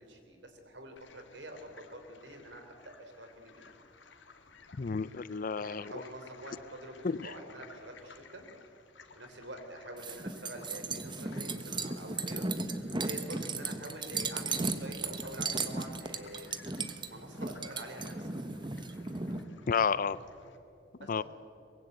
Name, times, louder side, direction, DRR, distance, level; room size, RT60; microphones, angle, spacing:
voice 1, 0.0-3.7 5.6-8.5 9.2-12.5 13.0-16.5 17.1-18.3 21.0-21.2, right 1 dB, 70° right, 5 dB, 3.7 m, -46 dB
sound 1, 1.0-20.6, left 5 dB, 80° left, 1.9 m, -57 dB
voice 2, 4.8-5.9 7.0-7.3 19.7-20.2 21.1-21.2, left 5 dB, 50° left, 18 dB, 0.5 m, -31 dB
sound 2, 10.0-19.4, right 3 dB, 25° right, 1.2 m, -36 dB
23.5 x 22.0 x 8.2 m, 2.8 s
head